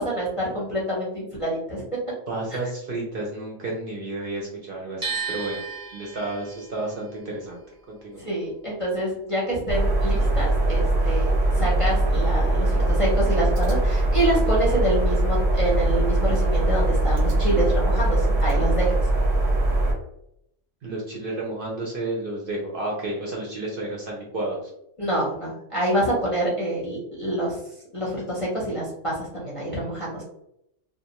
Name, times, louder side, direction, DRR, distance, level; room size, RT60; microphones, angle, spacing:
voice 1, 0.0-1.8 2.5-2.6 8.2-18.9 25.0-27.6 27.9-30.2, right 1 dB, 35° left, -6 dB, 0.6 m, -26 dB
voice 2, 2.3-5.6 5.9-7.6 7.9-8.2 20.8-24.7, right 2 dB, 55° right, -2 dB, 0.7 m, -31 dB
sound 1, 5.0-11.0 11.3-12.6, right 5 dB, 20° right, 0.6 m, -37 dB
sound 2, 9.7-19.9, right 2 dB, 85° right, 1.0 m, -21 dB
2.5 x 2.0 x 2.8 m, 0.78 s
omnidirectional pair, 1.3 m